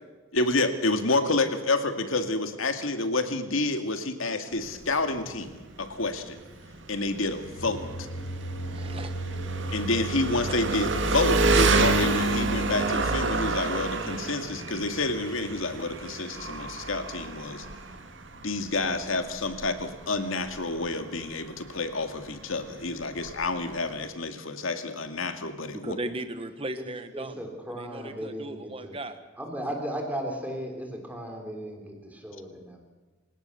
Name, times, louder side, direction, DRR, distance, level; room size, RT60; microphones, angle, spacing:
voice 1, 0.3-6.4 6.9-7.8 9.7-17.7 18.4-26.0, left 2 dB, 80° left, 7 dB, 2.2 m, -29 dB
Engine, 4.5-24.1, right 3 dB, 65° right, 1.9 m, -29 dB
sound 1, 7.4-16.3, right 2 dB, 65° left, 1.8 m, -39 dB
voice 2, 8.6-9.1 10.5-10.6 25.7-27.4 27.8-29.2, right 1 dB, 25° right, 9 dB, 1.2 m, -37 dB
voice 3, 27.1-29.0 29.4-32.8, right 1 dB, 10° right, 2 dB, 3.9 m, -36 dB
27.5 x 17.5 x 7.0 m, 1.3 s
head